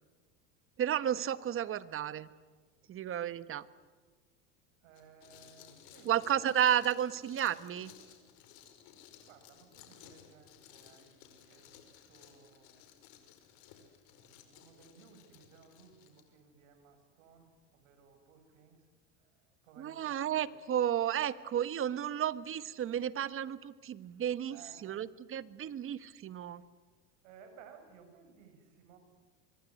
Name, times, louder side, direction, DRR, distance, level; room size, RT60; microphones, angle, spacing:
voice 1, 0.8-2.3 2.9-3.7 6.0-7.9 19.8-24.6 24.8-26.6, right 10 dB, 35° right, 15 dB, 1.3 m, -32 dB
voice 2, 4.8-6.2 9.2-12.9 14.1-18.9 19.2-20.6 24.5-25.1 27.2-29.0, right 6 dB, 80° right, 7 dB, 6.9 m, -59 dB
sound 1, 4.9-16.2, left 9 dB, 65° left, 5.2 m, -58 dB
25.5 x 22.5 x 9.8 m, 1.4 s
supercardioid pair, 120°, 38 cm